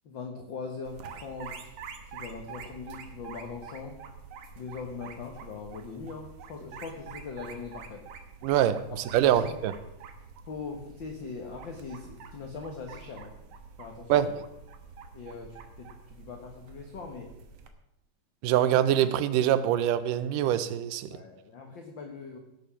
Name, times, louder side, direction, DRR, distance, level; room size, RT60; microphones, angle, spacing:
voice 1, 0.0-1.8 2.1-4.0 4.5-8.0 9.4-9.6 10.5-13.3 13.8-14.3 15.1-17.3 21.1-22.4, left 4 dB, 50° left, 3 dB, 1.5 m, -41 dB
sound 1, 0.8-17.7, right 5 dB, 60° right, 1.9 m, -47 dB
voice 2, 8.4-9.8 14.1-14.4 18.4-21.2, right 11 dB, 85° right, 14 dB, 2.4 m, -24 dB
17.0 x 7.7 x 6.0 m, 0.85 s
omnidirectional pair, 3.8 m